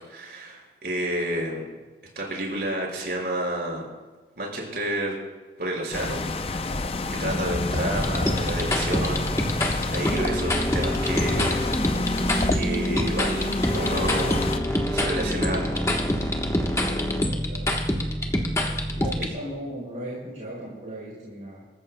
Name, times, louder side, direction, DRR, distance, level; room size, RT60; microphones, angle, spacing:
voice 1, 0.0-1.7 2.1-3.9 4.4-5.2 5.6-6.6 7.2-9.3 9.9-12.2 12.5-14.5 14.9-15.6, right 1 dB, 60° right, -2 dB, 5.2 m, -30 dB
sound 1, 5.9-14.6, left 3 dB, 35° left, 0.5 m, -29 dB
sound 2, 7.9-19.3, left 1 dB, 15° left, 1.1 m, -25 dB
voice 2, 17.1-17.7 18.9-21.7, right 1 dB, 40° right, -6 dB, 3.8 m, -37 dB
27.0 x 14.0 x 2.2 m, 1.3 s
head